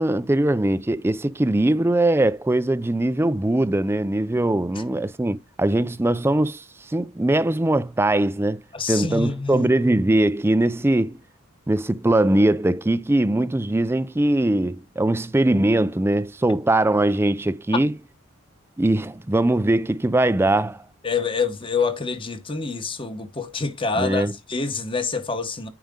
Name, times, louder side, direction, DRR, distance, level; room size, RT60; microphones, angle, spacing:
voice 1, 0.0-8.6 8.9-11.2 11.7-17.9 18.8-20.8 24.0-24.3, right 1 dB, 10° right, 0.4 m, -21 dB
voice 2, 8.7-9.7 21.0-25.7, left 4 dB, 25° left, 1.0 m, -26 dB
8.8 x 5.0 x 3.7 m
head